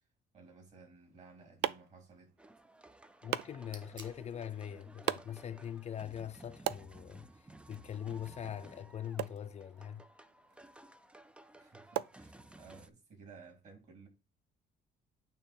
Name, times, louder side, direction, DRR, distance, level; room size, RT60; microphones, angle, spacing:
voice 1, 0.3-2.3 11.5-14.1, right 4 dB, 45° right, 3.9 m, -56 dB
sound 1, 0.9-12.9, right 13 dB, 80° right, 0.4 m, -43 dB
sound 2, 2.4-12.9, right 1 dB, 5° right, 0.5 m, -57 dB
voice 2, 3.2-10.0, left 9 dB, 40° left, 0.6 m, -42 dB
sound 3, 3.4-8.5, right 3 dB, 25° right, 2.1 m, -62 dB
8.9 x 3.0 x 4.4 m
cardioid pair, 110°, 17 cm